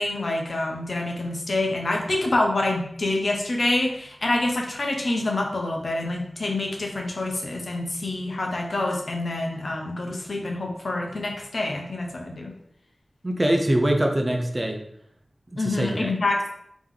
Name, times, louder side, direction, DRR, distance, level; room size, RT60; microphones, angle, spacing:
voice 1, 0.0-12.5 15.6-16.5, left 2 dB, 65° left, 1 dB, 0.8 m, -26 dB
voice 2, 13.2-14.8 15.5-16.1, right 1 dB, 25° right, 3 dB, 0.6 m, -23 dB
3.5 x 3.0 x 3.7 m, 0.71 s
wide cardioid pair, 80°, 0 cm